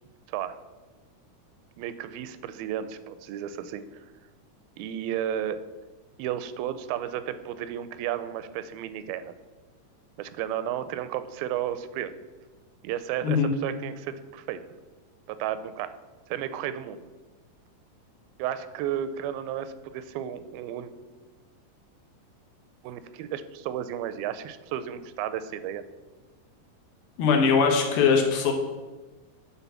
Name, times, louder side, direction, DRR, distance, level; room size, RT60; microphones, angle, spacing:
voice 1, 0.3-0.6 1.8-4.1 4.8-5.6 6.2-9.3 10.2-12.1 12.8-14.6 15.3-15.9 16.3-17.0 18.4-20.9 22.8-25.8, right 10 dB, 85° right, 13 dB, 2.4 m, -33 dB
voice 2, 27.2-28.5, left 5 dB, 80° left, 1 dB, 3.0 m, -21 dB
10.0 x 4.0 x 7.0 m, 1.3 s
omnidirectional pair, 4.2 m